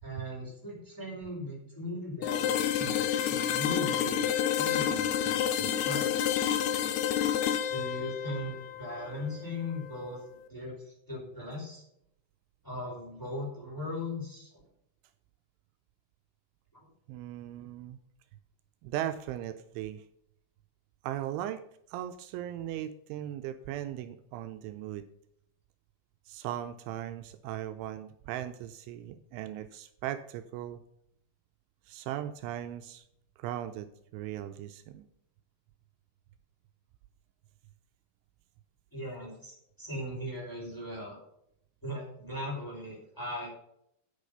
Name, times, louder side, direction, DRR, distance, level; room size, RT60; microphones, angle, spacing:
voice 1, 0.0-6.3 7.7-10.2 10.5-11.8 12.6-14.5 16.7-16.9 38.9-41.2 41.8-43.5, left 1 dB, 5° left, -4 dB, 5.0 m, -39 dB
sound 1, 2.2-10.1, left 9 dB, 75° left, 2.6 m, -29 dB
voice 2, 17.1-18.0 18.8-20.0 21.0-21.6 21.9-25.0 26.3-30.8 31.9-33.0 33.4-35.1, right 12 dB, 85° right, 9 dB, 3.1 m, -38 dB
10.0 x 8.4 x 5.5 m, 0.73 s
omnidirectional pair, 5.5 m